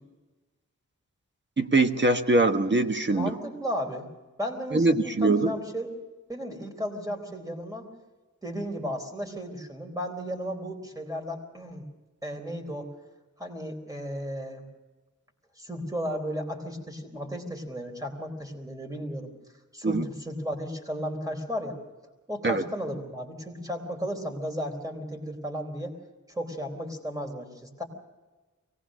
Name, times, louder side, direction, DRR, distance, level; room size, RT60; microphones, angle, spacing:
voice 1, 1.6-3.4 4.7-5.5 19.8-20.0 22.4-22.6, right 2 dB, 35° right, 6 dB, 1.4 m, -23 dB
voice 2, 3.1-4.1 4.4-5.9 6.3-7.9 8.4-11.8 12.2-12.9 13.4-14.6 15.6-19.3 19.7-21.8 22.3-26.0 26.3-27.8, equal, 10° right, 3 dB, 3.8 m, -34 dB
23.5 x 18.5 x 6.4 m, 1.2 s
wide cardioid pair, 110°, 30 cm